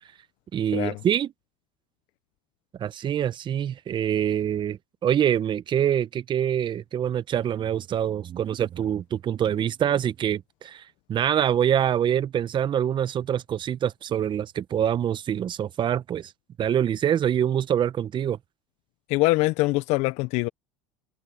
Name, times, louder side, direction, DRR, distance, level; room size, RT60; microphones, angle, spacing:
voice 1, 0.5-1.3 2.8-10.8 11.1-16.3 16.6-18.4, right 9 dB, 40° right, 1.1 m, -25 dB
voice 2, 19.1-20.5, left 22 dB, 65° left, 1.0 m, -23 dB
hypercardioid pair, 80°, 13 cm